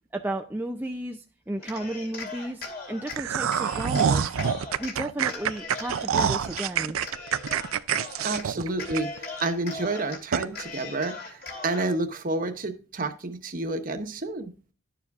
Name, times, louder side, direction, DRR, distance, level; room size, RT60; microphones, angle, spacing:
voice 1, 0.1-4.4 4.8-7.0, right 1 dB, 10° right, 3 dB, 0.4 m, -33 dB
Cheering, 1.6-3.2 3.5-5.0 5.3-6.7 7.0-8.5 8.7-10.2 10.5-11.9, left 3 dB, 45° left, 2.4 m, -39 dB
sound 1, 3.1-9.4 9.8-9.9 10.3-10.5, right 8 dB, 80° right, 0.4 m, -26 dB
voice 2, 8.2-9.1 9.4-14.5, right 2 dB, 40° right, 7 dB, 1.0 m, -29 dB
11.5 x 7.1 x 2.4 m, 0.37 s
head